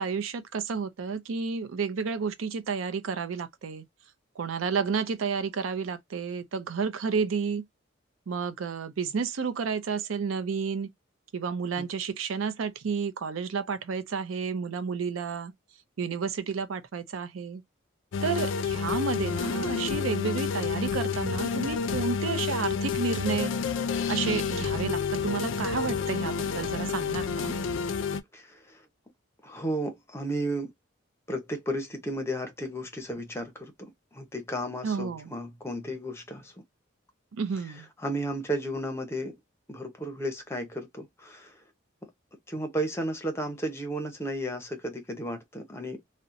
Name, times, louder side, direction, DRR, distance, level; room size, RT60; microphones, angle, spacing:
voice 1, 0.0-3.8 4.4-7.6 8.3-10.9 11.3-15.5 16.0-17.6 18.2-23.5 24.1-27.5 34.8-35.3 37.4-37.9, right 5 dB, 85° right, 0.5 m, -31 dB
sound 1, 18.1-28.2, left 5 dB, 70° left, 0.4 m, -29 dB
voice 2, 29.4-30.7 31.3-36.4 38.0-39.4 39.7-41.5 42.5-46.0, right 1 dB, 15° left, 0.6 m, -33 dB
2.8 x 2.1 x 2.4 m
head